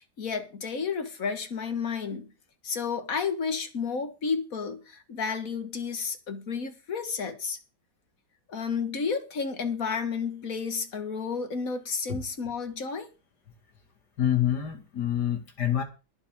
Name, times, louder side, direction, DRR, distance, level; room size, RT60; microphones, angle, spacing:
voice 1, 0.2-2.3 2.6-7.6 8.5-13.1, left 5 dB, 55° left, 2.0 m, -31 dB
voice 2, 14.2-15.8, left 11 dB, 85° left, 2.7 m, -26 dB
22.0 x 7.6 x 3.7 m
omnidirectional pair, 1.7 m